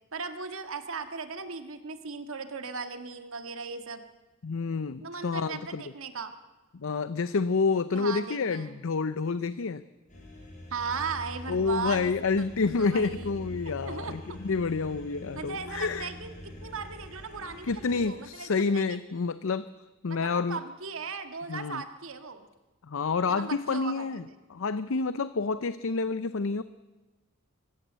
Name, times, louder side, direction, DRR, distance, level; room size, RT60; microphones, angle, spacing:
voice 1, 0.1-4.0 5.0-6.3 7.9-8.8 10.7-12.1 12.8-14.4 15.4-19.0 20.1-22.5 23.3-24.1, right 5 dB, 65° right, 8 dB, 1.7 m, -37 dB
voice 2, 4.4-5.8 6.7-9.8 11.5-16.1 17.7-20.6 21.5-21.8 22.8-26.6, left 4 dB, 65° left, 14 dB, 0.6 m, -29 dB
sound 1, 10.1-18.1, left 1 dB, 35° left, 5.9 m, -44 dB
24.5 x 15.0 x 8.1 m, 1.2 s
head